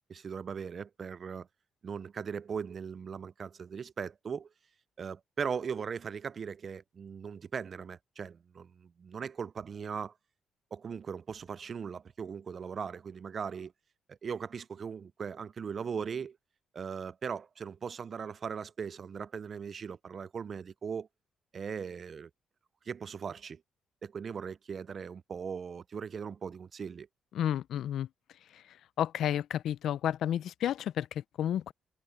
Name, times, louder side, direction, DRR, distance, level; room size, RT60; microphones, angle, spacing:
voice 1, 0.1-1.5 1.8-4.5 5.0-10.1 10.7-13.7 14.2-16.4 16.7-21.1 21.5-22.3 22.9-23.6 24.0-27.1, right 6 dB, 45° right, 0.4 m, -39 dB
voice 2, 27.3-28.1 28.5-28.6 29.0-31.7, left 10 dB, 75° left, 0.5 m, -31 dB
cardioid pair, 90°, 0 cm